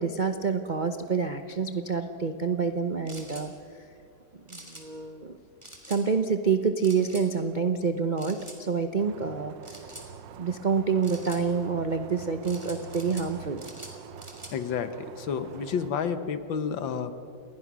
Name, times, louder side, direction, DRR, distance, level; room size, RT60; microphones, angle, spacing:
voice 1, 0.0-3.5 4.5-5.4 5.9-9.6 10.4-13.6, right 5 dB, 55° right, 8 dB, 0.5 m, -27 dB
sound 1, 3.1-3.5 4.5-4.8 5.6-6.0 6.8-7.3 8.2-8.6 9.6-10.1 11.0-11.4 12.4-13.3 13.6-14.5, right 1 dB, 15° right, 3.1 m, -45 dB
sound 2, 9.0-15.9, right 7 dB, 75° right, 1.6 m, -45 dB
voice 2, 14.5-17.1, left 6 dB, 75° left, 11 dB, 1.9 m, -30 dB
28.0 x 20.5 x 6.2 m, 2.5 s
omnidirectional pair, 2.1 m